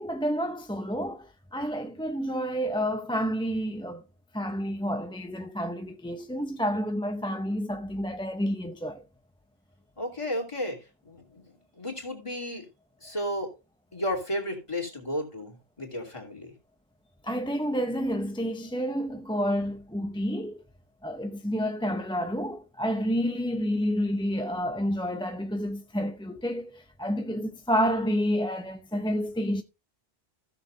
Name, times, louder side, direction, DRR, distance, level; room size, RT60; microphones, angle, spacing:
voice 1, 0.0-4.0 4.3-9.0 17.2-20.6 21.0-29.6, equal, 5° left, 0.6 m, -29 dB
voice 2, 10.0-10.8 11.0-12.6 13.0-13.5 13.9-16.5, left 1 dB, 30° left, 3.1 m, -33 dB
16.0 x 6.7 x 2.7 m
omnidirectional pair, 1.1 m